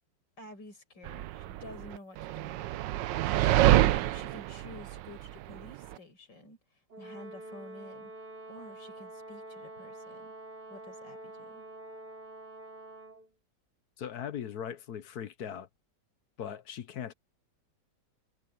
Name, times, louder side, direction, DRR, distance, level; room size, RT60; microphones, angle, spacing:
voice 1, 0.4-2.7 3.3-3.8 4.1-8.1 8.5-10.3 10.7-11.6, left 1 dB, 80° left, 6.8 m, -51 dB
sound 1, 1.1-5.9, right 14 dB, 85° right, 1.3 m, -27 dB
Brass instrument, 6.9-13.3, right 1 dB, 65° right, 4.7 m, -46 dB
voice 2, 14.0-15.7 16.4-17.1, left 8 dB, 65° left, 1.4 m, -39 dB
omnidirectional pair, 1.9 m